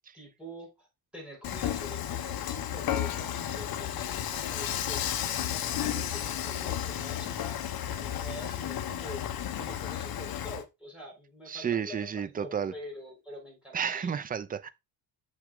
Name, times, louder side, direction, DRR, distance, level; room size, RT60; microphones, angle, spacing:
voice 1, 0.1-0.9 1.1-5.1 5.4-9.3 9.6-14.2, equal, ahead, 5.9 m, -46 dB
Dishes pots and pans / Frying (food), 1.4-10.6, left 10 dB, 55° left, 1.1 m, -33 dB
voice 2, 11.5-12.7 13.7-14.7, right 7 dB, 20° right, 0.5 m, -32 dB
7.4 x 6.0 x 3.8 m
cardioid pair, 155°, 44 cm